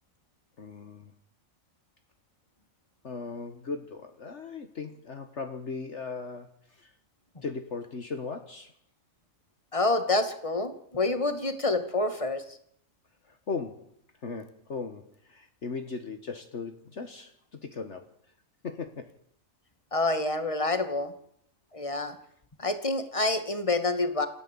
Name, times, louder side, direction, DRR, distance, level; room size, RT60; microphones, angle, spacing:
voice 1, 0.6-1.1 3.0-6.9 7.4-8.7 13.2-13.9 14.2-18.1 18.6-19.2, left 4 dB, 55° left, 8 dB, 1.7 m, -38 dB
voice 2, 9.7-12.4 19.9-21.1 21.7-22.1 22.6-24.3, left 2 dB, 25° left, 8 dB, 2.4 m, -27 dB
28.5 x 13.5 x 8.6 m, 0.66 s
omnidirectional pair, 1.4 m